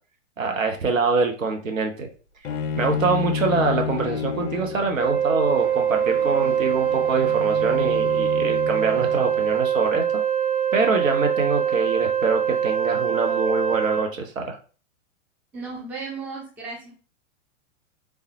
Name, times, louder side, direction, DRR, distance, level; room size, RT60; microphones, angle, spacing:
voice 1, 0.4-2.1 2.8-10.0 10.7-14.6, right 4 dB, 80° right, 3 dB, 0.8 m, -24 dB
Bowed string instrument, 2.4-9.5, left 6 dB, 70° left, 0.5 m, -31 dB
Wind instrument woodwind instrument, 4.9-14.1, right 8 dB, 40° right, 1.4 m, -23 dB
voice 2, 15.5-16.9, right 4 dB, 5° right, -3 dB, 0.4 m, -35 dB
3.4 x 2.1 x 2.9 m, 0.38 s
figure-of-eight pair, 105°, 39 cm